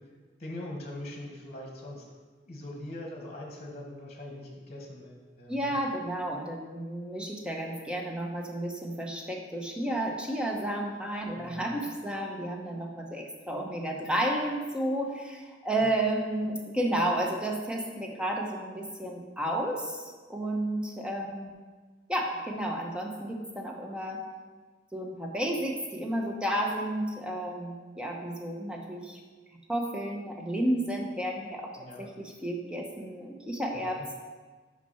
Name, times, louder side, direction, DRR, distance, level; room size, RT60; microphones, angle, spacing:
voice 1, 0.4-2.0 2.4-5.7 11.4-11.6 15.8-15.9 31.8-32.0 33.7-34.0, left 1 dB, 35° left, 0 dB, 1.3 m, -42 dB
voice 2, 5.5-21.5 22.1-24.2 24.9-29.2 29.7-31.7 32.0-34.1, right 1 dB, 5° right, 0 dB, 0.9 m, -32 dB
5.9 x 5.6 x 5.6 m, 1.4 s
head